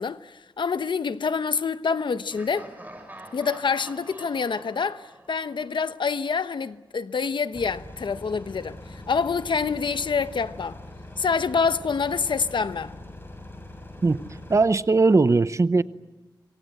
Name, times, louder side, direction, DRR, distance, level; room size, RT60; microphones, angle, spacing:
voice 1, 0.0-2.7 3.3-10.8 11.2-12.9, left 5 dB, 75° left, 1.0 m, -26 dB
Laughter, 2.3-6.2, right 1 dB, 20° right, 6.4 m, -46 dB
sound 1, 7.5-14.7, left 2 dB, 25° left, 6.7 m, -42 dB
voice 2, 14.5-15.8, right 3 dB, 40° right, 0.8 m, -19 dB
26.0 x 24.5 x 7.9 m
wide cardioid pair, 85°, 8 cm